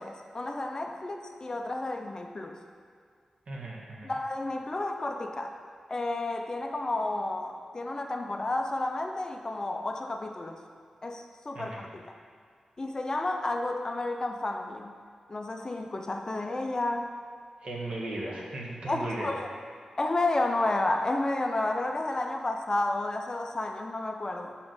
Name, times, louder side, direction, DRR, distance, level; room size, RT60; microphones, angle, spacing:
voice 1, 0.0-2.6 4.0-5.6 5.9-10.6 11.0-12.1 12.8-15.0 15.3-17.1 18.9-19.5 20.0-24.6, left 2 dB, 35° left, 4 dB, 0.5 m, -31 dB
voice 2, 3.5-4.1 11.5-11.8 17.6-19.4, right 2 dB, 65° right, -3 dB, 1.4 m, -36 dB
5.9 x 4.2 x 6.3 m, 2.2 s
wide cardioid pair, 75°, 2 cm